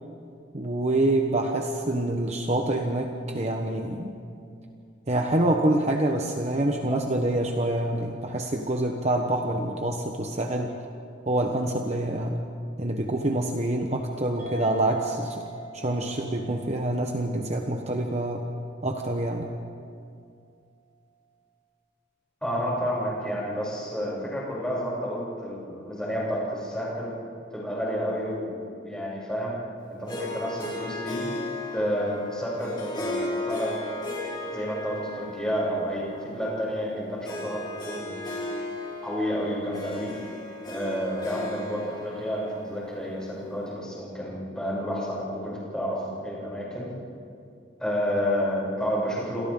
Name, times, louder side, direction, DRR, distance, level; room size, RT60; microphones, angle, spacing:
voice 1, 0.5-4.1 5.1-10.8 11.3-12.4 12.8-15.4 15.7-18.5 18.8-19.5, right 1 dB, 40° right, 2 dB, 1.2 m, -26 dB
sound 1, 14.4-19.3, right 1 dB, 75° right, 7.7 m, -42 dB
voice 2, 22.4-27.1 27.5-29.6 29.9-31.2 31.7-34.0 34.5-38.1 39.0-40.1 40.6-46.9 47.8-49.4, equal, 5° left, -7 dB, 7.8 m, -30 dB
Harp, 30.1-43.7, left 2 dB, 25° left, 5.1 m, -36 dB
29.0 x 27.0 x 3.9 m, 2.4 s
head